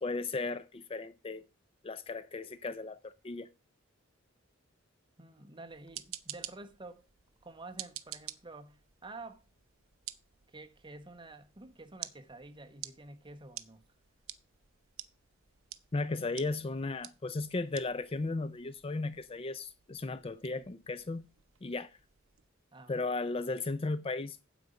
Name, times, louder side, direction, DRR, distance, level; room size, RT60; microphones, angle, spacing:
voice 1, 0.0-1.5 1.8-3.5 15.9-21.2 21.6-22.0 22.9-24.4, left 3 dB, 25° left, 0.4 m, -35 dB
voice 2, 5.2-7.1 7.4-9.4 10.5-13.8 22.7-22.9, right 2 dB, 25° right, 1.2 m, -49 dB
sound 1, 5.7-22.5, right 13 dB, 80° right, 0.8 m, -50 dB
9.3 x 8.1 x 5.1 m
head